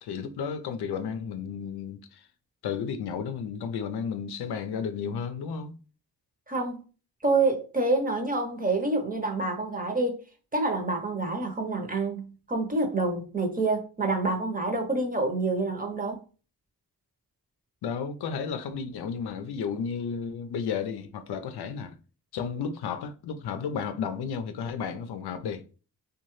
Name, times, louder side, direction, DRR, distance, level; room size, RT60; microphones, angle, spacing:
voice 1, 0.0-2.3 2.6-5.8 17.8-22.0 22.3-25.6, left 6 dB, 85° left, 0.5 m, -33 dB
voice 2, 6.5-6.8 7.2-10.2 10.5-16.2, right 3 dB, 20° right, 0.8 m, -27 dB
2.7 x 2.3 x 3.1 m
cardioid pair, 60°, 38 cm